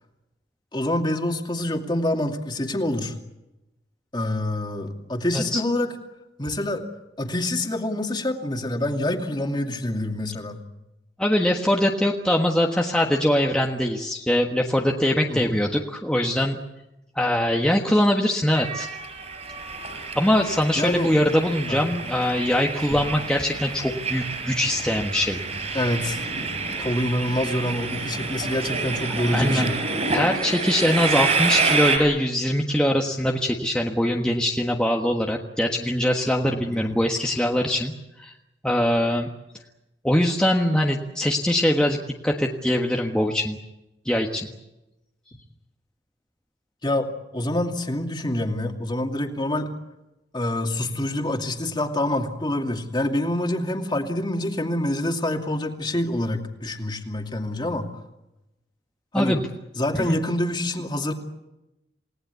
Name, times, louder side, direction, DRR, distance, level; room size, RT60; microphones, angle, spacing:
voice 1, 0.7-3.1 4.1-5.9 6.4-6.8 7.2-10.6 15.3-15.5 20.8-21.1 21.7-21.8 22.9-23.2 25.7-26.2 26.8-29.8 36.5-37.0 46.8-49.7 50.3-57.9 59.1-59.4 59.8-61.1, left 1 dB, 25° left, 4 dB, 2.5 m, -26 dB
voice 2, 11.2-16.6 17.1-18.9 20.1-25.4 29.3-29.7 30.1-37.9 38.2-38.3 38.6-39.3 40.0-42.0 42.2-43.6 44.0-44.5 59.1-59.4 60.1-60.2, left 1 dB, 5° left, 0 dB, 1.4 m, -22 dB
Train, 18.6-32.0, right 4 dB, 40° right, 6.4 m, -28 dB
28.5 x 18.5 x 8.3 m, 0.96 s
head